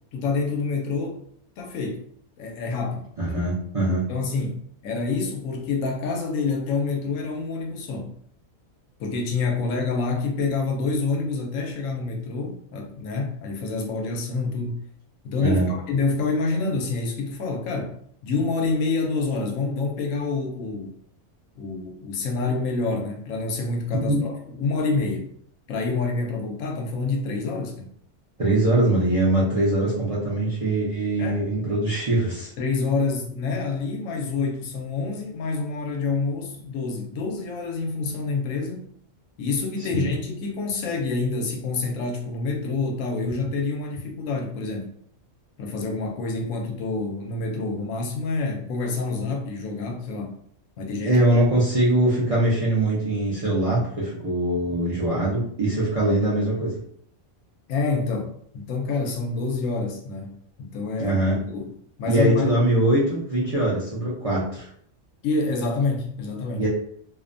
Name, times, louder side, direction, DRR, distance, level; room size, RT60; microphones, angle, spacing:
voice 1, 0.1-1.2 1.6-2.0 2.4-3.3 4.1-8.1 9.0-14.8 15.2-21.0 21.6-25.3 25.7-27.9 31.2-31.4 32.6-38.9 39.4-44.9 45.6-50.3 50.8-51.2 57.7-61.2 61.5-61.7 62.0-62.6 65.2-66.6, left 3 dB, 85° left, 1.0 m, -27 dB
voice 2, 3.2-4.1 15.4-15.7 24.1-24.2 28.4-32.5 39.9-40.0 51.0-56.7 61.0-61.4 62.1-64.7 66.6-66.7, right 1 dB, 45° right, 0.5 m, -22 dB
2.5 x 2.1 x 2.5 m
omnidirectional pair, 1.3 m